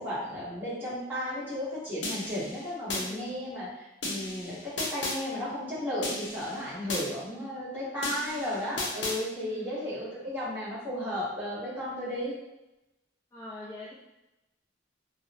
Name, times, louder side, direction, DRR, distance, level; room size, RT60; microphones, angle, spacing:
voice 1, 0.0-12.3, left 1 dB, 10° right, -12 dB, 1.1 m, -34 dB
sound 1, 2.0-3.0 4.0-5.2 6.0-7.0 8.0-9.2, left 2 dB, 65° left, 0.6 m, -34 dB
voice 2, 2.9-3.3 7.3-7.6 9.4-9.7 13.3-13.9, left 1 dB, 15° left, -9 dB, 0.4 m, -44 dB
2.8 x 2.0 x 2.5 m, 0.97 s
head